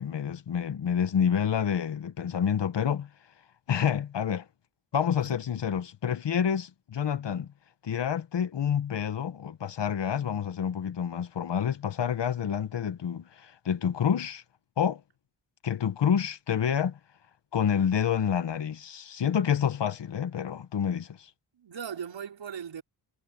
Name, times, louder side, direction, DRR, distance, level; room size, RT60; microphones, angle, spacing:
voice 1, 0.0-3.1 3.7-4.4 4.9-7.5 7.8-14.4 14.8-15.0 15.6-17.0 17.5-21.3, left 8 dB, 65° left, 1.6 m, -28 dB
voice 2, 5.2-5.6 21.5-22.8, right 7 dB, 70° right, 5.8 m, -39 dB
cardioid pair, 70°, 46 cm